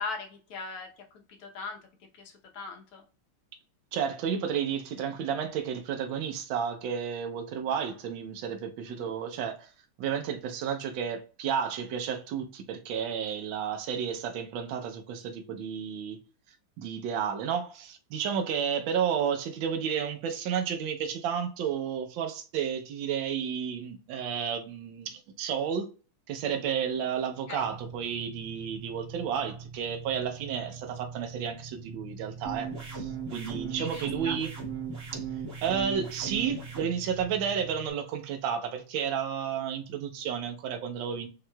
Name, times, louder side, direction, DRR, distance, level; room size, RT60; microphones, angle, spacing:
voice 1, 0.0-1.8 2.1-3.0 8.9-9.1 27.5-27.7 33.8-34.4, left 4 dB, 90° left, 1.9 m, -40 dB
voice 2, 3.9-9.7 10.0-16.2 16.8-25.9 26.3-34.5 35.1-35.2 35.6-41.3, right 7 dB, 70° right, 1.4 m, -32 dB
sound 1, 27.6-37.9, right 5 dB, 85° right, 2.2 m, -45 dB
sound 2, 32.4-36.8, right 6 dB, 35° right, 1.2 m, -37 dB
7.6 x 2.8 x 2.2 m
omnidirectional pair, 2.4 m